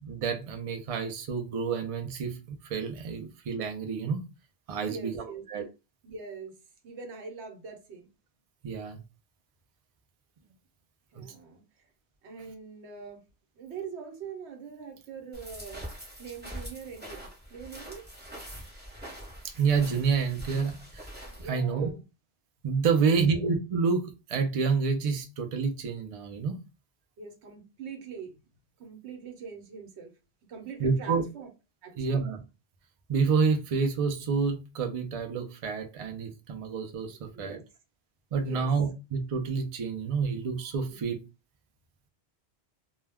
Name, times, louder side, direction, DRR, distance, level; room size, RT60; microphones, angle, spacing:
voice 1, 0.0-4.2 4.7-5.6 8.6-9.0 11.2-11.3 19.4-21.1 21.4-21.9 22.6-26.6 30.8-31.2 32.0-32.4 33.1-37.6 38.3-41.2, right 5 dB, 55° right, 0.4 m, -28 dB
voice 2, 4.8-5.4 6.0-6.6 6.8-8.1 11.1-11.9 12.2-13.2 13.6-15.9 16.2-18.1 21.3-22.0 23.0-23.4 27.2-28.3 28.8-30.1 30.5-31.5 31.8-32.2 37.3-37.6 38.4-38.7 40.9-41.0, right 6 dB, 80° right, 1.0 m, -43 dB
sound 1, 15.3-21.5, equal, 10° right, 0.8 m, -44 dB
2.2 x 2.1 x 3.3 m
omnidirectional pair, 1.1 m